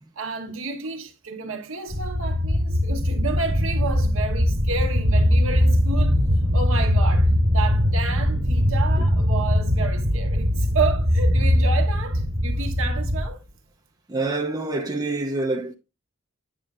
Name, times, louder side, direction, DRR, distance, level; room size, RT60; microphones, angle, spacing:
voice 1, 0.2-6.2 6.5-13.4, right 4 dB, 65° right, 1.1 m, -31 dB
sound 1, 1.9-13.3, equal, 90° right, 1.4 m, -21 dB
voice 2, 14.1-15.7, right 2 dB, 20° right, 0.6 m, -27 dB
8.7 x 6.4 x 2.4 m
head